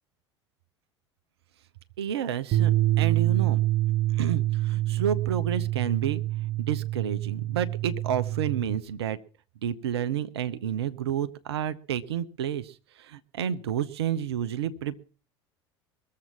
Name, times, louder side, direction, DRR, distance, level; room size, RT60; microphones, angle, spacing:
voice 1, 2.0-2.7 3.0-3.6 4.1-6.2 6.6-9.2 9.6-15.0, right 9 dB, 65° right, 12 dB, 0.7 m, -30 dB
sound 1, 2.5-8.8, right 15 dB, 45° right, 1.0 m, -26 dB
21.5 x 7.5 x 5.8 m, 0.38 s
figure-of-eight pair, 70°, 14 cm